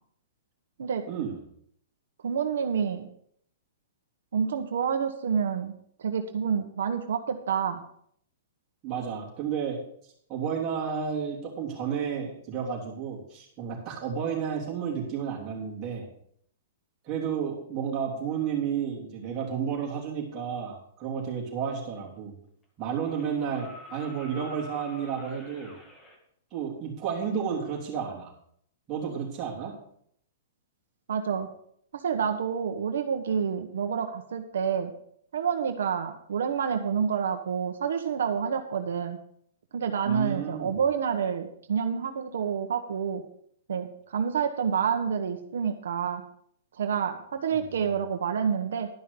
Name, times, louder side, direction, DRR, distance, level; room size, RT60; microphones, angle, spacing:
voice 1, 1.1-1.4 8.8-9.8 10.3-16.1 17.0-22.3 22.8-25.7 26.5-28.3 28.9-29.7 40.0-40.8 47.5-47.6, right 7 dB, 20° right, -4 dB, 3.3 m, -32 dB
voice 2, 2.2-3.1 4.3-5.7 6.0-7.8 31.1-31.5 31.9-34.9 35.3-39.2 39.7-43.2 43.7-46.2 46.7-48.9, right 7 dB, 80° right, 5 dB, 1.1 m, -28 dB
sound 1, 23.0-26.2 27.9-28.0, left 2 dB, 10° left, 1.7 m, -47 dB
12.0 x 5.7 x 6.9 m, 0.66 s
hypercardioid pair, 165°, 0 cm